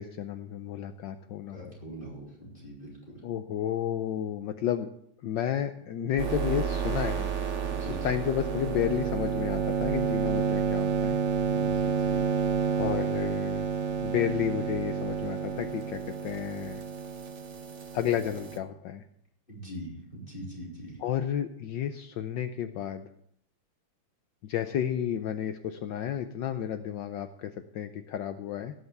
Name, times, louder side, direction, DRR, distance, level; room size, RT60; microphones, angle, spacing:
voice 1, 0.0-1.7 3.2-4.9 5.2-7.3 7.9-11.2 12.8-13.7 14.0-16.8 17.9-19.0 21.0-23.1 24.4-28.7, left 10 dB, 70° left, 9 dB, 1.3 m, -32 dB
voice 2, 1.5-3.2 7.7-8.2 11.4-12.3 19.5-21.0, equal, 25° left, -4 dB, 4.4 m, -42 dB
sound 1, 6.2-18.6, right 7 dB, 40° right, 1.2 m, -30 dB
17.5 x 5.9 x 8.0 m, 0.70 s
omnidirectional pair, 2.2 m